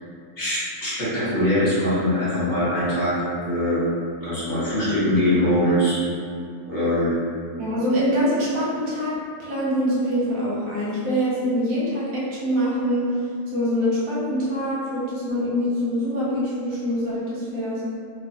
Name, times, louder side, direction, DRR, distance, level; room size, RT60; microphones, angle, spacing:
voice 1, 0.4-3.8 4.2-6.0 6.7-7.1, left 1 dB, 35° left, -11 dB, 1.2 m, -22 dB
voice 2, 7.6-13.1 13.5-17.8, equal, 80° right, -8 dB, 1.3 m, -24 dB
3.1 x 2.4 x 2.6 m, 2.3 s
omnidirectional pair, 1.5 m